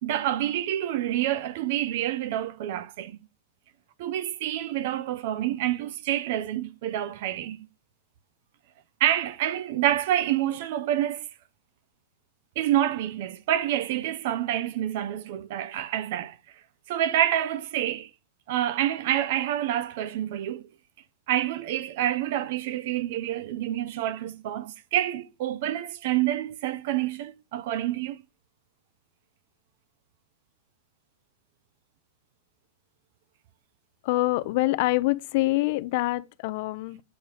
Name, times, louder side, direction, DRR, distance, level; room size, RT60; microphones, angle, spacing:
voice 1, 0.0-3.3 4.0-7.6 9.0-11.3 12.6-16.4 16.9-18.1 18.5-20.7 21.3-28.2, right 12 dB, 45° right, 0.5 m, -27 dB
voice 2, 34.0-37.0, left 20 dB, 40° left, 0.4 m, -25 dB
7.8 x 4.9 x 4.0 m
supercardioid pair, 175°, 0 cm